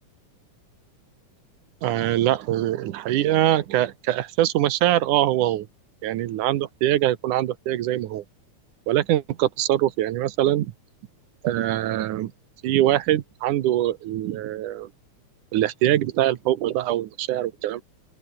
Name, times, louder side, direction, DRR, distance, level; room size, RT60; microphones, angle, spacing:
voice 1, 1.8-5.7 6.0-8.2 8.9-10.7 11.4-12.3 12.6-14.9 15.5-17.8, right 13 dB, 80° right, 2.6 m, -23 dB
open air
omnidirectional pair, 3.6 m